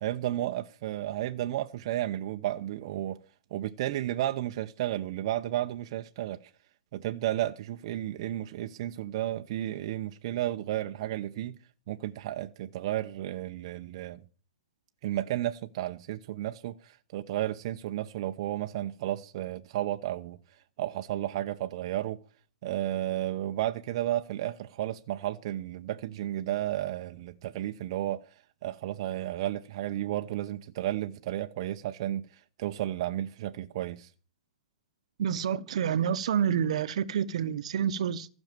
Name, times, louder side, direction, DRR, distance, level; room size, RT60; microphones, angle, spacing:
voice 1, 0.0-3.2 3.5-6.4 6.9-11.6 11.9-14.2 15.0-20.4 20.8-22.2 22.6-28.3 28.6-34.1, right 13 dB, 45° right, 0.8 m, -33 dB
voice 2, 35.2-38.3, right 8 dB, 65° right, 1.1 m, -28 dB
15.0 x 6.5 x 9.0 m
hypercardioid pair, 150°, 4 cm